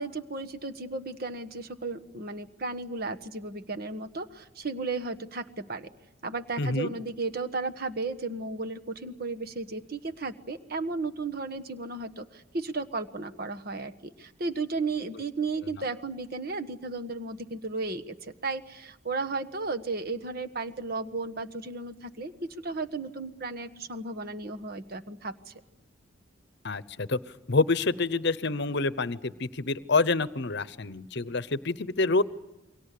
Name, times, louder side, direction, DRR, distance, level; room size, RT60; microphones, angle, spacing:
voice 1, 0.0-5.9 6.2-25.5, right 3 dB, 45° right, 8 dB, 1.4 m, -34 dB
voice 2, 6.6-6.9 15.7-15.8 26.6-27.2 27.5-32.2, left 3 dB, 55° left, 16 dB, 0.9 m, -27 dB
29.0 x 23.0 x 8.5 m, 0.93 s
head